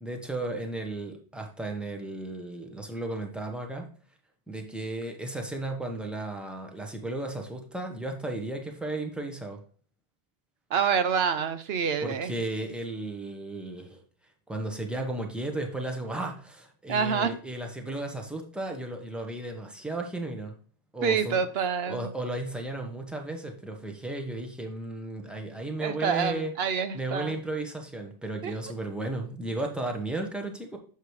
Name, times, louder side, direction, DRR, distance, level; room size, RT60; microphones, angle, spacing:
voice 1, 0.0-3.9 4.5-9.6 12.0-14.0 14.5-20.5 20.9-21.4 21.9-26.5 26.9-30.8, right 2 dB, ahead, 1.1 m, -34 dB
voice 2, 10.7-12.3 16.9-17.3 21.0-22.1 25.8-27.4 28.4-28.5, right 6 dB, 75° right, 1.0 m, -27 dB
6.9 x 4.9 x 4.8 m
omnidirectional pair, 1.0 m